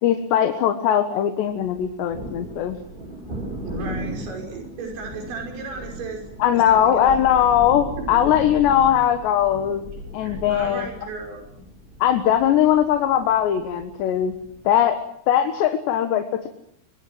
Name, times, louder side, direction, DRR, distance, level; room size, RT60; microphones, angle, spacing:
voice 1, 0.0-2.8 6.4-10.9 12.0-14.4 14.7-15.0 15.3-16.5, left 10 dB, 75° left, 7 dB, 3.6 m, -20 dB
Thunder, 1.6-14.8, right 1 dB, 10° right, 6.9 m, -37 dB
voice 2, 3.6-6.2 6.5-7.2 8.0-8.1 10.2-11.4, right 3 dB, 75° right, 2 dB, 7.9 m, -34 dB
25.5 x 23.0 x 7.8 m, 0.68 s
omnidirectional pair, 5.2 m